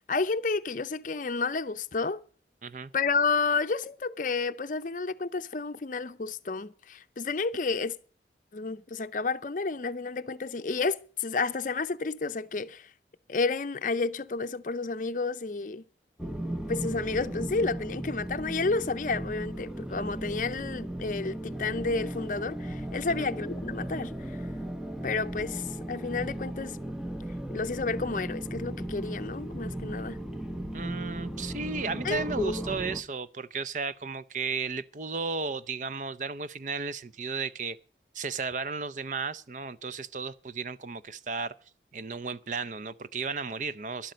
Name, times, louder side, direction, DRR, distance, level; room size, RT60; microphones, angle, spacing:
voice 1, 0.1-2.2 2.9-8.0 8.5-12.9 13.3-15.8 16.7-24.4 25.0-26.8 27.5-30.2 32.0-32.5, left 4 dB, 45° left, 0.6 m, -31 dB
sound 1, 16.2-33.0, right 1 dB, 5° right, 0.7 m, -36 dB
voice 2, 30.7-37.8 38.1-41.5 41.9-44.1, right 4 dB, 45° right, 0.5 m, -34 dB
12.0 x 12.0 x 5.1 m
head